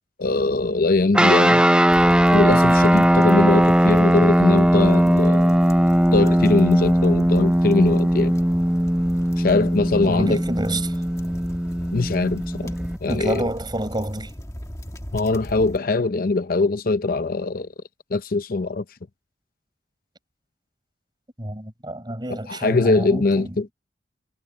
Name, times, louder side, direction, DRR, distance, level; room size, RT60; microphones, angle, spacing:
voice 1, 0.2-1.6 2.3-5.5 6.1-8.4 9.4-10.4 11.9-12.7 13.0-13.5 15.1-17.7 18.1-18.8 22.5-23.7, left 3 dB, 55° left, 0.7 m, -21 dB
sound 1, 1.1-13.0, equal, 5° right, 0.6 m, -18 dB
sound 2, 1.9-15.8, equal, 20° left, 1.6 m, -37 dB
voice 2, 10.0-11.0 12.6-14.3 21.4-23.6, right 1 dB, 25° right, 5.7 m, -29 dB
head